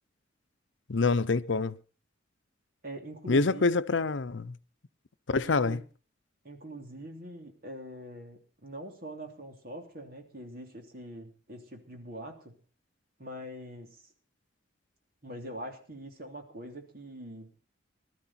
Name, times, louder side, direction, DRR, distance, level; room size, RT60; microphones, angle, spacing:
voice 1, 0.9-1.8 3.3-4.5 5.3-5.8, left 4 dB, 75° left, 0.7 m, -26 dB
voice 2, 2.8-3.7 5.3-5.8 6.4-12.5 13.2-14.0 15.2-17.6, right 1 dB, 50° right, 3.2 m, -43 dB
20.5 x 13.0 x 4.3 m
head